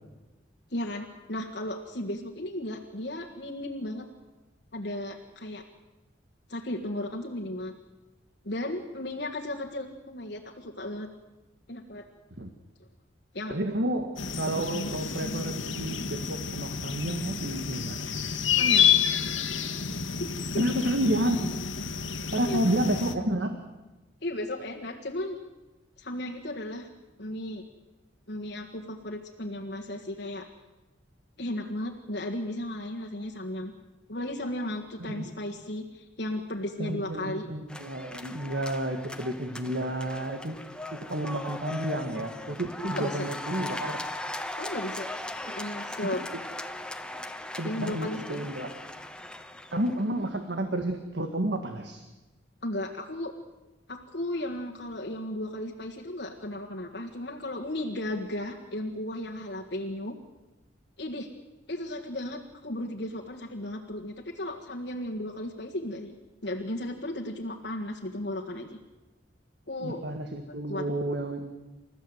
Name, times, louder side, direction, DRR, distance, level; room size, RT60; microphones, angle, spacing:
voice 1, 0.7-4.1 4.7-5.6 6.5-7.7 8.4-11.1 11.7-12.1 13.3-13.6 18.5-18.9 20.2-20.3 20.5-20.6 22.4-22.7 24.2-25.4 26.0-26.9 27.2-27.6 28.3-30.5 31.4-33.7 34.1-37.5 42.9-43.3 44.6-45.1 45.5-46.2 47.6-48.4 52.6-53.3 53.9-60.2 61.0-61.3 61.7-66.2 66.4-68.8 69.7-70.0 70.7-70.9, left 1 dB, 60° left, 1 dB, 1.7 m, -35 dB
voice 2, 13.5-14.1 14.4-18.1 20.6-21.6 22.3-23.6 35.0-35.3 36.8-40.6 40.9-44.0 47.6-48.8 49.7-52.0 69.8-71.5, right 1 dB, 60° right, 6 dB, 1.8 m, -30 dB
sound 1, 14.2-23.1, left 8 dB, 85° left, 1.7 m, -29 dB
sound 2, 37.7-50.1, left 1 dB, 5° left, 1.0 m, -39 dB
30.0 x 14.5 x 8.0 m, 1.1 s
head